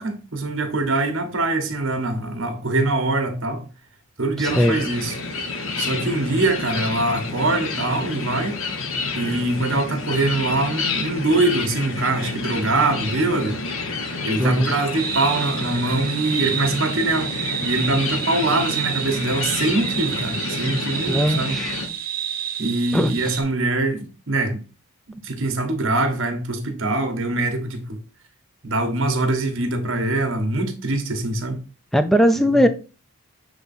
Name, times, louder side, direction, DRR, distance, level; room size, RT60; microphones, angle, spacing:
voice 1, 0.0-3.6 4.2-5.1 5.8-8.6 9.1-13.6 14.2-17.3 17.6-21.6 22.6-24.6 25.2-28.0 28.6-31.6 32.5-32.6, right 2 dB, 60° right, 1.3 m, -23 dB
sound 1, 4.4-21.9, left 3 dB, 65° left, 1.0 m, -29 dB
voice 2, 4.4-4.8 14.4-14.7 21.1-21.8 22.9-23.1 31.9-32.7, equal, ahead, 0.5 m, -19 dB
sound 2, 15.0-23.4, right 9 dB, 40° right, 1.5 m, -29 dB
7.0 x 3.5 x 4.2 m
head